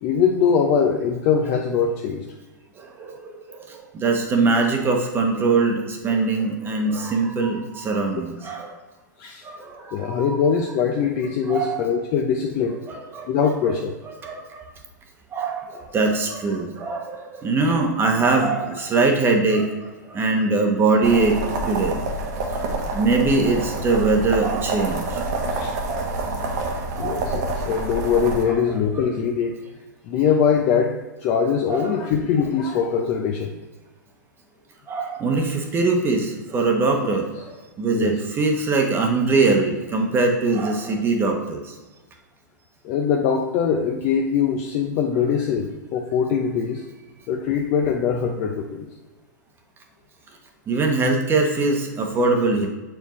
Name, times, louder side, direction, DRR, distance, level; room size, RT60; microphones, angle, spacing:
voice 1, 0.0-2.2 9.2-9.4 9.9-12.8 13.3-13.9 25.6-25.8 27.0-29.5 30.1-33.5 37.9-38.1 42.8-46.8 47.3-48.9, left 6 dB, 40° left, 2 dB, 0.6 m, -22 dB
voice 2, 2.8-8.8 9.4-10.4 11.5-11.8 12.9-13.3 13.6-13.7 14.2-14.6 15.3-21.4 21.7-22.0 22.5-26.1 27.0-27.5 28.5-28.8 31.7-32.1 34.9-41.8 50.7-52.7, right 3 dB, 20° right, 3 dB, 0.9 m, -22 dB
sound 1, 21.0-28.4, right 2 dB, 55° right, 1.2 m, -27 dB
6.7 x 4.6 x 3.0 m, 1.2 s
hypercardioid pair, 120°, 10 cm